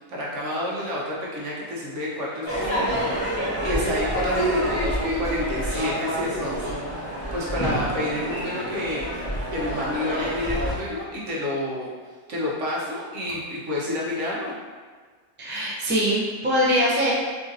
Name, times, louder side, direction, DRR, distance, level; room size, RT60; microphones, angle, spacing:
voice 1, 0.1-2.8 3.6-9.2 9.5-11.9 12.3-14.5, left 1 dB, 60° right, -5 dB, 1.2 m, -29 dB
Crowd / Fireworks, 2.5-10.7, equal, 20° left, 1.1 m, -27 dB
voice 2, 15.4-17.1, equal, 15° right, -6 dB, 0.3 m, -22 dB
3.8 x 3.7 x 2.6 m, 1.5 s
omnidirectional pair, 1.5 m